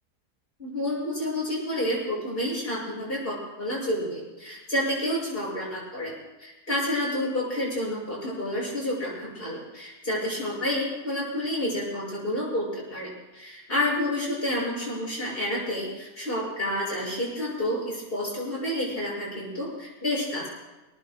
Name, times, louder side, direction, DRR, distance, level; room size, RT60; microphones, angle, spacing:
voice 1, 0.6-20.5, left 1 dB, 35° left, -4 dB, 7.2 m, -29 dB
29.0 x 19.0 x 2.3 m, 1.1 s
omnidirectional pair, 1.7 m